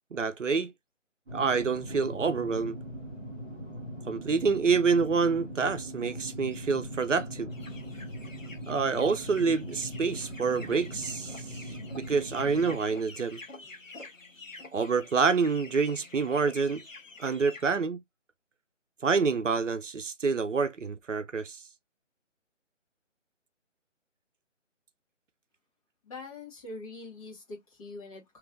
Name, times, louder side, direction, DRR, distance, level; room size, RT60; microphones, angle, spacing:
voice 1, 0.1-0.7 1.3-2.8 4.1-7.5 8.7-11.3 11.9-13.4 14.7-16.8 17.2-18.0 19.0-21.6, right 5 dB, 75° right, 0.6 m, -27 dB
sound 1, 1.3-12.8, equal, 5° right, 0.9 m, -40 dB
sound 2, 7.5-17.7, left 3 dB, 90° left, 1.0 m, -48 dB
voice 2, 26.0-28.4, left 3 dB, 25° left, 1.7 m, -43 dB
3.2 x 3.1 x 2.4 m
figure-of-eight pair, 150°, 38 cm